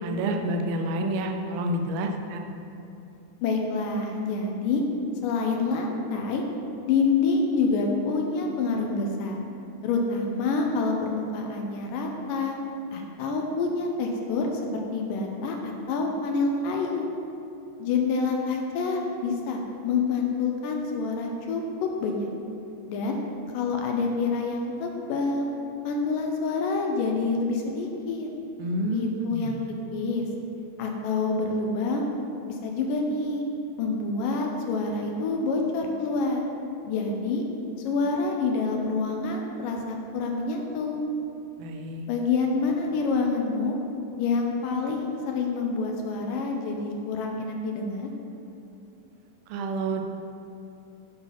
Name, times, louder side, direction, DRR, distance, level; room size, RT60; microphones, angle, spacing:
voice 1, 0.0-2.5 28.6-29.7 41.6-42.1 49.5-50.0, right 1 dB, 90° right, 3 dB, 2.5 m, -29 dB
voice 2, 3.4-4.8 5.2-6.4 6.9-9.4 9.8-12.6 12.9-14.5 14.7-17.1 17.8-22.3 22.9-23.2 23.5-25.5 25.8-28.3 28.9-30.3 30.8-32.1 32.5-33.4 33.8-36.4 36.8-37.4 37.8-41.0 42.1-43.8 44.2-48.1, left 4 dB, 80° left, 1 dB, 2.2 m, -27 dB
9.6 x 4.0 x 5.7 m, 2.8 s
omnidirectional pair, 4.1 m